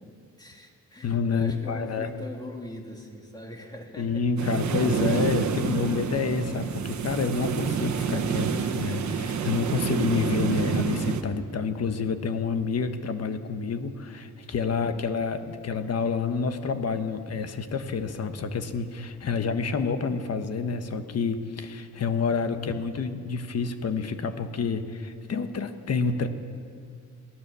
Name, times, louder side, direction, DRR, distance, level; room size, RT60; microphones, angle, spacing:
voice 1, 0.0-4.2 14.7-15.1, left 1 dB, 15° left, 2 dB, 2.4 m, -42 dB
voice 2, 1.0-2.1 4.0-26.3, left 5 dB, 55° left, 8 dB, 1.3 m, -28 dB
sound 1, 4.4-11.2, right 6 dB, 65° right, 1.4 m, -28 dB
22.0 x 17.5 x 7.0 m, 2.3 s
wide cardioid pair, 145°, 30 cm